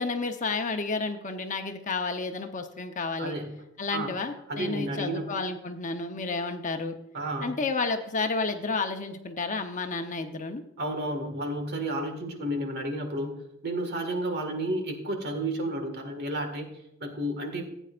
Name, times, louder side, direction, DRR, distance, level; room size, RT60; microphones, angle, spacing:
voice 1, 0.0-3.4 3.8-7.0 7.4-10.6, left 3 dB, 40° left, 5 dB, 0.9 m, -31 dB
voice 2, 3.2-3.6 3.9-4.1 4.5-5.3 7.1-7.6 10.8-17.6, right 1 dB, 55° right, 5 dB, 1.9 m, -32 dB
15.0 x 9.0 x 2.5 m, 0.83 s
head